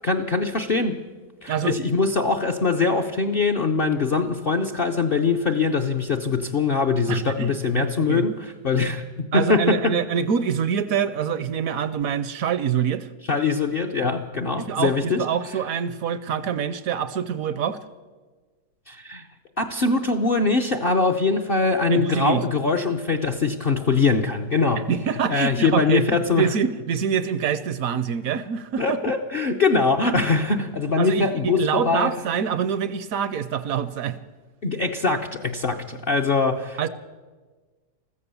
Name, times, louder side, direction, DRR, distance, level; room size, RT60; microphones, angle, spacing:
voice 1, 0.0-1.0 1.4-9.0 9.3-10.0 13.3-15.2 18.9-19.3 19.6-24.9 25.3-26.5 28.8-32.1 34.6-36.9, left 4 dB, 50° left, 7 dB, 0.6 m, -22 dB
voice 2, 1.5-1.8 7.1-8.3 9.3-13.1 14.6-17.8 21.9-22.4 24.9-28.8 31.0-34.2 36.8-36.9, right 7 dB, 65° right, 14 dB, 0.9 m, -25 dB
14.5 x 14.0 x 6.9 m, 1.3 s
omnidirectional pair, 1.8 m